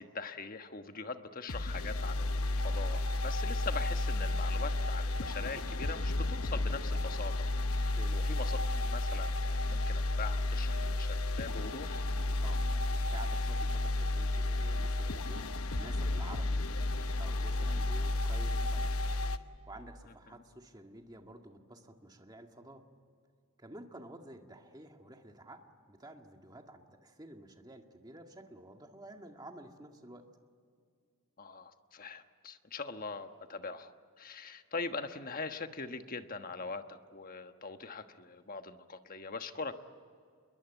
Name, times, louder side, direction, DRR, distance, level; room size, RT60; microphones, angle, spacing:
voice 1, 0.0-12.0 17.7-17.9 31.4-39.7, left 4 dB, 40° left, 8 dB, 1.3 m, -42 dB
sound 1, 1.5-19.4, left 2 dB, 70° left, 1.1 m, -32 dB
voice 2, 12.4-16.6 17.2-19.1 19.7-22.8 23.6-30.2, right 1 dB, 20° right, 4 dB, 1.9 m, -51 dB
27.5 x 22.5 x 9.2 m, 2.1 s
head